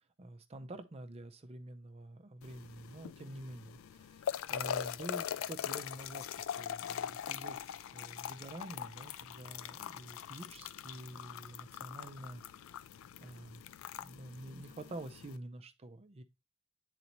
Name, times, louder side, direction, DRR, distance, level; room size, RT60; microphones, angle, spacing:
voice 1, 0.2-6.3 6.6-12.4 13.2-13.6 14.0-16.2, right 1 dB, 30° right, 0.5 m, -48 dB
sound 1, 2.4-15.4, left 9 dB, 75° left, 0.3 m, -42 dB
8.1 x 4.1 x 2.9 m
head